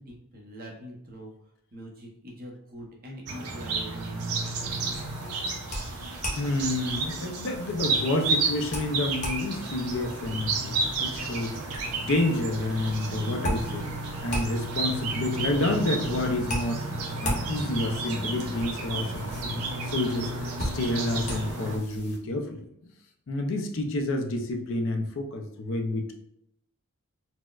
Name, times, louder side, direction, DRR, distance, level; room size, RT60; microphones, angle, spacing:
voice 1, 0.0-1.3 1.7-4.6, equal, 40° right, -1 dB, 0.7 m, -43 dB
sound 1, 3.3-21.8, right 3 dB, 80° right, 0.5 m, -32 dB
sound 2, 4.7-22.2, equal, 30° left, 0.8 m, -38 dB
voice 2, 6.4-13.9 14.2-16.8 17.2-22.6 23.3-26.1, left 2 dB, 55° left, 4 dB, 0.4 m, -29 dB
4.2 x 2.1 x 2.3 m, 0.75 s
head